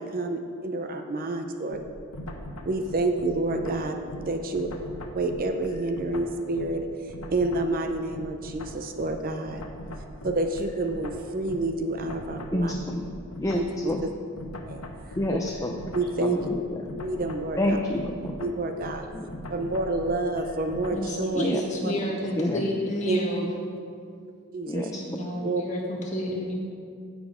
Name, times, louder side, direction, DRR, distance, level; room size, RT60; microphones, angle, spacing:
voice 1, 0.0-1.8 2.6-4.7 5.1-9.6 10.2-12.7 13.5-14.1 14.7-14.9 15.3-15.4 15.9-16.5 17.0-17.8 18.4-19.1 19.5-21.5 21.8-21.9 23.1-23.2 24.5-24.9 25.4-25.6, right 2 dB, 40° right, 5 dB, 0.6 m, -29 dB
sound 1, 1.7-6.8 7.1-21.1, left 1 dB, 80° left, 0.9 m, -40 dB
voice 2, 12.5-13.0 13.4-14.0 15.2-15.7 17.6-18.2 19.1-19.3 21.4-21.6 22.4-22.6 24.7-24.9, left 1 dB, 15° left, 2 dB, 0.5 m, -27 dB
voice 3, 20.9-23.5 24.9-26.5, equal, 30° left, -2 dB, 1.7 m, -30 dB
15.5 x 5.2 x 5.0 m, 2.3 s
head